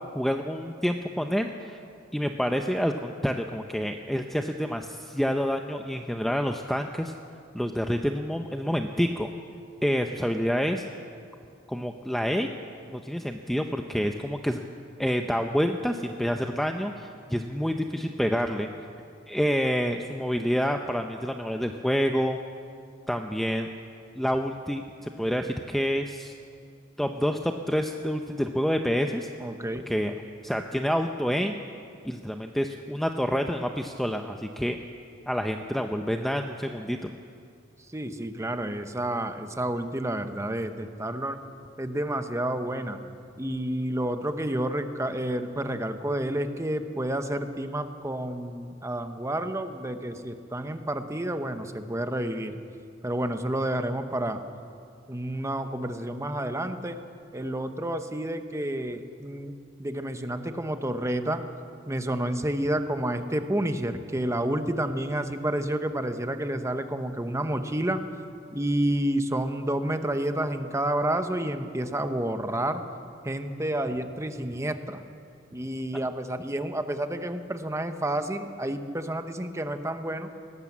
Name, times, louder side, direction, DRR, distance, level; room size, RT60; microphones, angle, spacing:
voice 1, 0.1-1.8 2.1-7.1 7.5-9.3 9.8-10.8 11.7-12.5 12.9-14.6 15.0-18.7 19.3-22.4 23.1-23.7 24.2-26.3 27.0-29.3 29.9-30.1 30.4-31.6 32.0-34.8 35.3-37.1, equal, ahead, 4 dB, 0.7 m, -28 dB
voice 2, 29.4-29.9 37.9-41.4 41.8-43.0 43.4-52.6 53.0-54.4 55.1-57.0 57.3-59.5 59.8-61.4 61.9-68.0 68.5-72.8 73.2-75.0 75.5-80.3, right 1 dB, 15° right, 8 dB, 1.1 m, -30 dB
20.5 x 18.5 x 7.4 m, 2.4 s
head